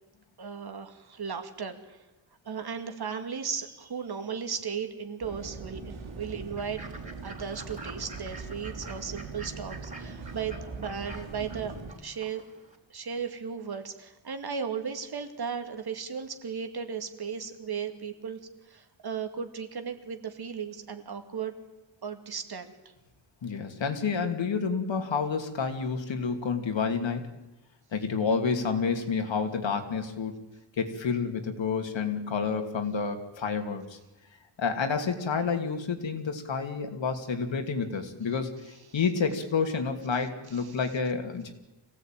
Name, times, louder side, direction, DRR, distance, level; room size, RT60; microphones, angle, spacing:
voice 1, 0.4-2.0 2.5-6.8 7.2-11.7 12.0-12.4 12.9-18.4 18.7-21.5 22.0-22.7, right 6 dB, 55° right, 7 dB, 2.3 m, -36 dB
sound 1, 5.2-11.9, right 4 dB, 85° right, 3.8 m, -41 dB
Fowl / Bird, 6.6-12.8, right 2 dB, 15° right, 3.9 m, -48 dB
voice 2, 23.4-27.3 27.9-30.3 30.8-34.0 34.6-41.5, left 5 dB, 75° left, 5 dB, 2.8 m, -29 dB
26.0 x 17.0 x 9.1 m, 1.0 s
wide cardioid pair, 170°, 45 cm